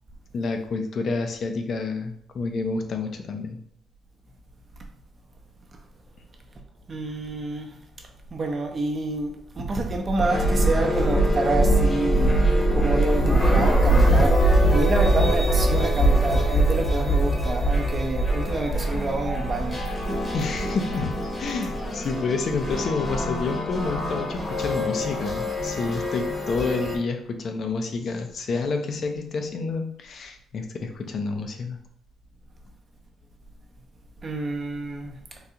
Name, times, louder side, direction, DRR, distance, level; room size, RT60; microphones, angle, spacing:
voice 1, 0.3-3.6 20.3-21.1 21.4-31.8, left 4 dB, 60° left, 0.5 m, -29 dB
voice 2, 6.9-7.7 8.0-19.8 34.2-35.1, right 2 dB, 40° right, 0.6 m, -28 dB
sound 1, 10.3-27.0, right 1 dB, 25° left, 0.9 m, -22 dB
3.8 x 2.3 x 2.8 m
cardioid pair, 90°, 0 cm